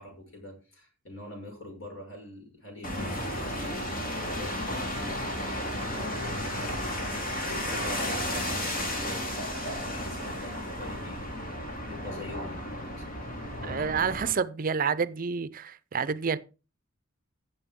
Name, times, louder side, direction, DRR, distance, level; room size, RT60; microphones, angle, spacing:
voice 1, 0.0-13.8, left 1 dB, 90° left, 5.8 m, -45 dB
sound 1, 2.8-14.3, left 1 dB, 45° left, 3.6 m, -33 dB
voice 2, 13.6-16.4, right 6 dB, 45° right, 0.6 m, -29 dB
16.0 x 7.0 x 3.7 m
head